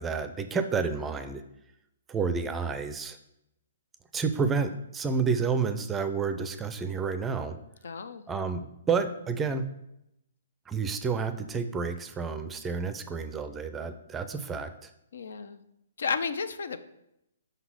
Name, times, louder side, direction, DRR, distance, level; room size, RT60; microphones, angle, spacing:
voice 1, 0.0-1.4 2.1-3.2 4.1-7.6 8.3-9.7 10.7-14.9, right 5 dB, 15° right, 10 dB, 0.5 m, -30 dB
voice 2, 7.8-8.2 15.1-15.6 16.0-16.8, left 5 dB, 65° left, 11 dB, 0.5 m, -32 dB
5.4 x 3.9 x 6.0 m, 0.83 s
figure-of-eight pair, 125°, 0 cm